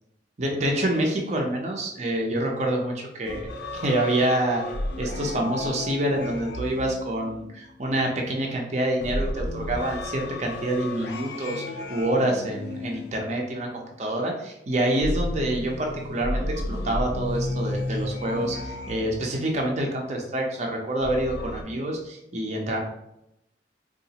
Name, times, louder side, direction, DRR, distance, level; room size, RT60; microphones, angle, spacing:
voice 1, 0.4-3.5 3.8-4.6 5.0-22.8, right 1 dB, 40° right, 0 dB, 0.6 m, -27 dB
sound 1, 3.2-7.9 9.0-13.8 15.0-19.7 21.0-21.6, left 1 dB, 70° left, 0.5 m, -33 dB
3.8 x 2.4 x 2.8 m, 0.83 s
head